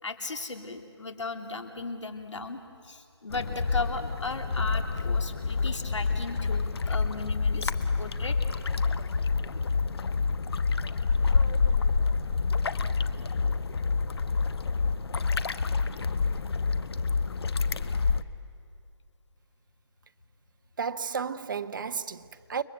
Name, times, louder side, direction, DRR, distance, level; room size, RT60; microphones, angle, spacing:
voice 1, 0.0-8.4, left 3 dB, 90° left, 3.2 m, -36 dB
sound 1, 3.3-18.2, left 4 dB, 60° left, 1.1 m, -27 dB
voice 2, 20.8-22.6, right 6 dB, 45° right, 0.9 m, -33 dB
29.5 x 22.5 x 8.0 m
hypercardioid pair, 165°, 15 cm